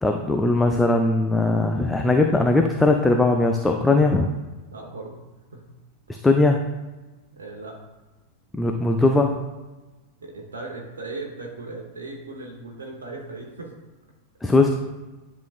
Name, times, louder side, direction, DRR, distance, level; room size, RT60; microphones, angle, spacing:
voice 1, 0.0-4.3 6.1-6.6 8.5-9.4 14.4-14.7, left 2 dB, 10° left, 4 dB, 0.4 m, -19 dB
voice 2, 4.7-5.2 5.5-5.6 7.3-7.7 10.2-13.7, right 3 dB, 70° right, -1 dB, 1.0 m, -37 dB
10.5 x 3.8 x 2.5 m, 1.2 s
figure-of-eight pair, 90°, 0 cm